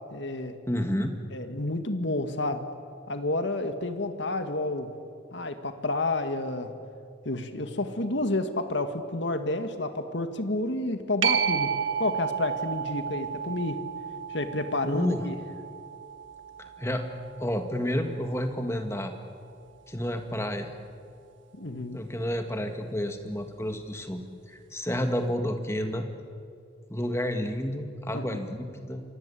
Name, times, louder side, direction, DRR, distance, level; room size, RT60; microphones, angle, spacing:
voice 1, 0.1-0.6 1.3-2.7 3.1-4.9 5.3-6.7 7.3-11.7 12.0-13.8 14.3-15.3 21.6-22.0 28.1-28.4, left 2 dB, 70° left, 8 dB, 2.0 m, -30 dB
voice 2, 0.7-1.1 14.8-15.3 16.6-17.1 17.4-19.1 19.9-20.7 21.9-24.2 24.5-26.0 26.9-29.0, equal, 15° left, 6 dB, 1.9 m, -30 dB
sound 1, 11.2-18.4 23.9-24.0, right 7 dB, 85° right, 1.4 m, -32 dB
27.5 x 24.5 x 8.5 m, 2.4 s
head